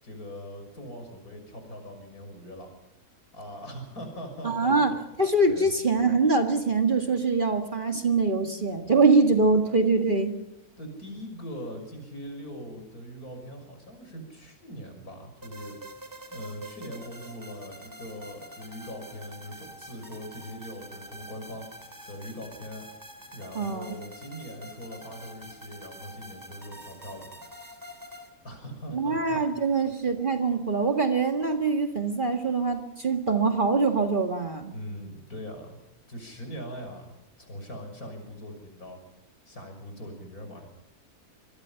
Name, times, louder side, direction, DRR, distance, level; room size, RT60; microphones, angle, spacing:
voice 1, 0.0-2.7 3.3-4.8 5.5-5.7 10.7-15.8 16.3-21.7 22.1-22.9 23.3-27.4 28.4-29.9 34.7-35.8 36.1-39.0 39.5-40.7, equal, 70° left, 5 dB, 6.6 m, -41 dB
voice 2, 4.4-10.4 23.6-23.9 28.9-34.7, right 3 dB, 35° right, 5 dB, 1.9 m, -24 dB
sound 1, 15.4-28.3, right 1 dB, 10° right, 3.0 m, -46 dB
25.5 x 22.5 x 5.8 m, 0.85 s
omnidirectional pair, 1.6 m